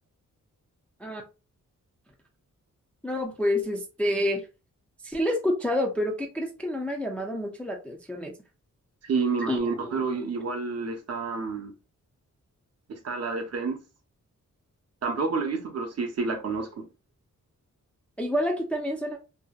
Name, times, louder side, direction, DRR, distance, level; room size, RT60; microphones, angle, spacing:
voice 1, 3.0-4.5 5.0-8.3 9.5-10.3 18.2-19.2, left 1 dB, 5° left, 0.3 m, -28 dB
voice 2, 9.1-11.7 12.9-13.8 15.0-16.8, right 4 dB, 55° right, 0.6 m, -29 dB
2.7 x 2.1 x 2.2 m
wide cardioid pair, 155°, 31 cm